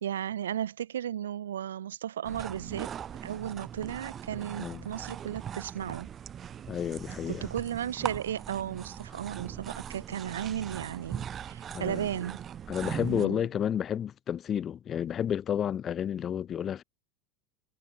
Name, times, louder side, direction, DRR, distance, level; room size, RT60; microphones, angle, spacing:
voice 1, 0.0-2.9 3.2-6.1 7.3-12.4 13.1-13.5, right 10 dB, 90° right, 0.7 m, -35 dB
sound 1, 2.3-13.3, right 9 dB, 35° right, 1.5 m, -40 dB
voice 2, 6.7-7.5 11.7-12.1 12.7-16.8, left 9 dB, 40° left, 1.4 m, -31 dB
hypercardioid pair, 90°, 0 cm